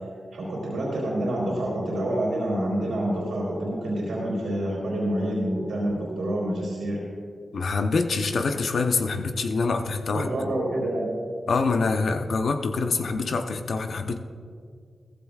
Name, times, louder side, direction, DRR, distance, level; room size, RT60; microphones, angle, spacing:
voice 1, 0.3-7.0 10.1-11.1, right 1 dB, 85° right, -5 dB, 3.4 m, -27 dB
voice 2, 7.5-10.3 11.5-14.2, left 4 dB, 75° left, 6 dB, 0.8 m, -25 dB
17.0 x 15.0 x 2.4 m, 2.1 s
cardioid pair, 45°, 0 cm